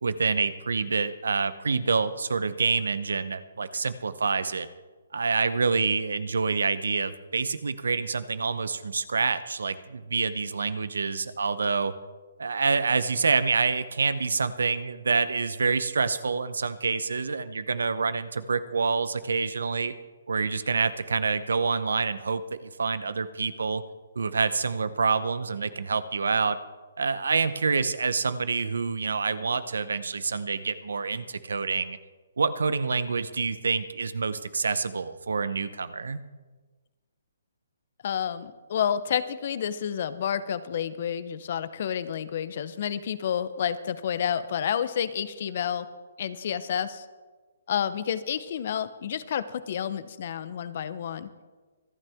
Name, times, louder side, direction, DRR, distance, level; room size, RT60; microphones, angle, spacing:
voice 1, 0.0-4.7 5.1-11.9 12.4-19.9 20.3-23.8 24.2-26.6 27.0-32.0 32.4-36.2, right 4 dB, 80° right, 14 dB, 0.9 m, -27 dB
voice 2, 38.0-45.9 46.2-47.0 47.7-51.3, left 8 dB, 50° left, 14 dB, 0.8 m, -30 dB
25.5 x 9.1 x 3.6 m, 1.3 s
hypercardioid pair, 145°, 0 cm